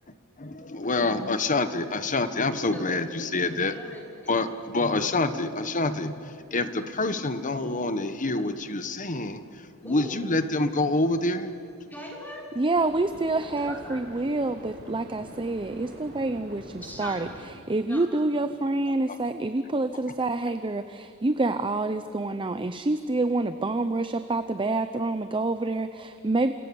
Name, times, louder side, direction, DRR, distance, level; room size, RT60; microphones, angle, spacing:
voice 1, 0.4-3.7 4.3-11.5, left 2 dB, 35° left, 10 dB, 1.3 m, -27 dB
voice 2, 2.5-4.5 9.8-10.3 11.9-12.5 13.3-14.0 16.8-17.5 17.8-18.5, equal, 10° left, -2 dB, 5.4 m, -42 dB
sound 1, 7.9-8.1 12.8-17.4, equal, 50° right, 7.9 m, -45 dB
voice 3, 12.6-17.3 17.7-26.5, right 2 dB, 20° right, 10 dB, 0.7 m, -27 dB
29.5 x 27.0 x 7.1 m, 2.4 s
head